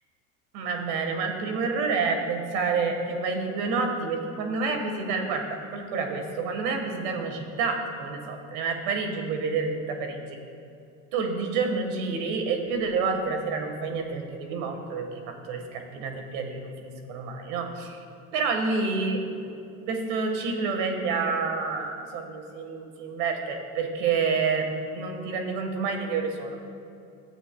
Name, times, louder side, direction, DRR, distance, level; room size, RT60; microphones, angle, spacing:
voice 1, 0.5-10.2 11.1-18.0 18.3-19.5 19.9-24.7 24.9-26.6, right 4 dB, 65° right, 4 dB, 1.6 m, -28 dB
13.5 x 8.1 x 2.3 m, 2.6 s
supercardioid pair, 100°, 42 cm